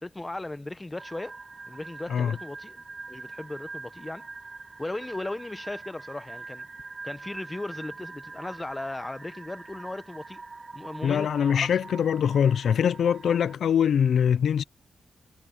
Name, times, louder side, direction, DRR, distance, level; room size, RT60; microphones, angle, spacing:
voice 1, 0.0-1.4 1.7-4.3 4.8-6.7 7.0-10.4 10.7-11.7, left 2 dB, 15° left, 0.9 m, -37 dB
sound 1, 1.0-13.5, right 3 dB, 35° right, 2.3 m, -43 dB
voice 2, 11.0-14.6, left 8 dB, 85° left, 0.3 m, -23 dB
wide cardioid pair, 100°, 0 cm